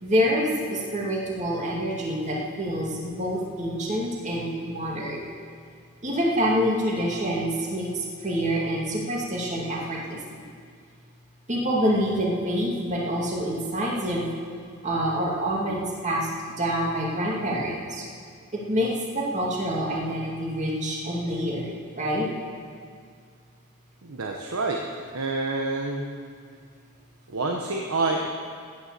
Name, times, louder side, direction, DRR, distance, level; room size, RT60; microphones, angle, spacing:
voice 1, 0.0-5.3 6.0-10.4 11.5-14.3 14.8-18.1 18.5-22.3, equal, 35° right, -2 dB, 2.2 m, -27 dB
voice 2, 24.0-24.8 25.1-26.0 27.3-28.3, right 3 dB, 80° right, 1 dB, 1.2 m, -27 dB
16.5 x 9.7 x 6.8 m, 2.1 s
head